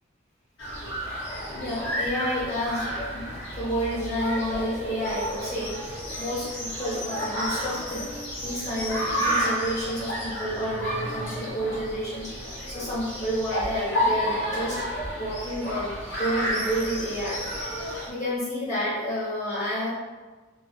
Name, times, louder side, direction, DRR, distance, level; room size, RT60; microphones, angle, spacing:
sound 1, 0.6-18.1, equal, 70° left, 0.7 m, -31 dB
voice 1, 1.5-8.0 8.4-14.8 15.1-17.4 17.7-19.9, equal, 35° left, -10 dB, 1.3 m, -30 dB
2.6 x 2.6 x 2.4 m, 1.3 s
head